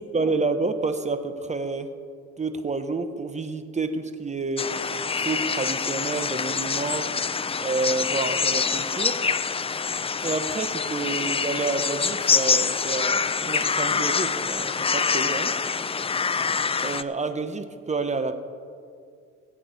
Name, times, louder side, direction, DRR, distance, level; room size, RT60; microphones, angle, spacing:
voice 1, 0.0-1.9 2.4-4.8 5.1-7.1 7.6-9.2 10.2-15.5 16.8-18.4, right 3 dB, 25° right, 9 dB, 0.9 m, -29 dB
sound 1, 4.6-17.0, left 5 dB, 20° left, 0.4 m, -25 dB
20.0 x 8.4 x 4.1 m, 2.3 s
cardioid pair, 90°, 30 cm